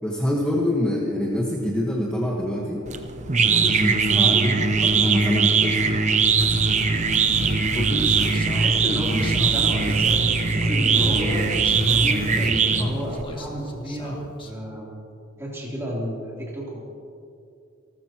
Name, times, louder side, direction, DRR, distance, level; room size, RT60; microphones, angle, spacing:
voice 1, 0.0-2.8 3.4-6.0 11.0-11.1, equal, 5° left, -3 dB, 1.4 m, -26 dB
sound 1, 2.9-13.2, right 5 dB, 35° right, 0.8 m, -21 dB
sound 2, 6.4-12.5, right 1 dB, 60° right, 2.5 m, -36 dB
Human voice, 7.7-14.5, equal, 25° left, 1.6 m, -35 dB
voice 2, 8.5-11.5 12.0-14.2 14.4-14.9 15.4-16.8, equal, 15° right, -5 dB, 3.3 m, -31 dB
28.5 x 13.5 x 3.0 m, 2.5 s
head